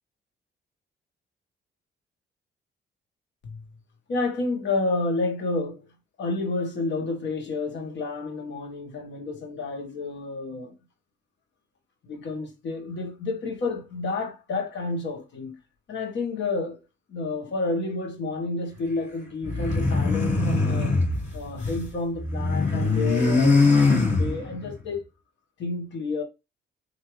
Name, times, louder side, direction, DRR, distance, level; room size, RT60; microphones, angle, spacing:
voice 1, 4.1-5.9 6.2-10.7 12.0-15.6 15.9-16.8 17.1-21.0 21.3-23.7 24.0-25.1 25.6-26.2, left 3 dB, 65° left, 1.3 m, -30 dB
sound 1, 19.4-21.9 22.1-24.7, left 3 dB, 35° left, 2.2 m, -22 dB
4.4 x 2.8 x 3.1 m
cardioid pair, 90°, 20 cm